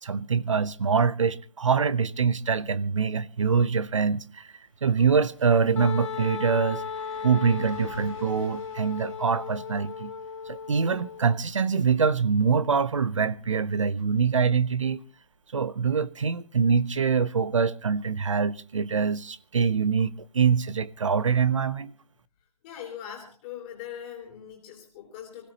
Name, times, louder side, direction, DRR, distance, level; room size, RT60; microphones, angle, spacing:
voice 1, 0.0-4.5 4.8-6.8 7.2-10.1 10.5-15.0 15.5-21.9, right 5 dB, 50° right, 0.7 m, -24 dB
sound 1, 4.1-4.2 4.5-14.3 14.6-14.7 17.5-17.6, equal, 15° right, 3.8 m, -54 dB
Wind instrument woodwind instrument, 5.8-11.4, left 6 dB, 45° left, 0.9 m, -36 dB
voice 2, 22.6-25.5, left 9 dB, 15° left, 2.9 m, -41 dB
25.0 x 16.5 x 2.9 m
hypercardioid pair, 175°, 20 cm